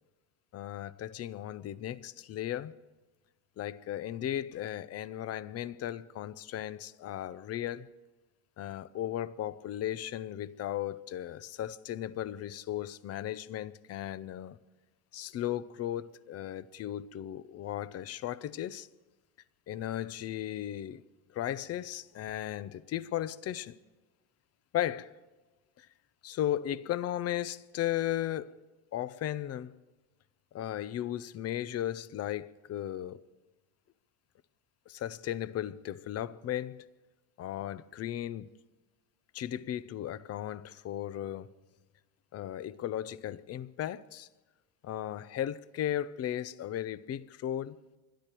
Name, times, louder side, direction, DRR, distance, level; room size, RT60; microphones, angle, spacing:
voice 1, 0.5-2.7 3.6-7.9 8.6-14.6 15.1-18.9 19.7-21.0 21.3-23.7 24.7-25.1 25.8-25.9 26.2-28.5 28.9-29.7 30.5-33.2 34.9-36.9 37.4-38.5 39.3-41.5 42.3-44.3 44.8-47.8, left 12 dB, 35° left, 0.5 m, -36 dB
21.5 x 12.5 x 4.5 m
cardioid pair, 125°, 47 cm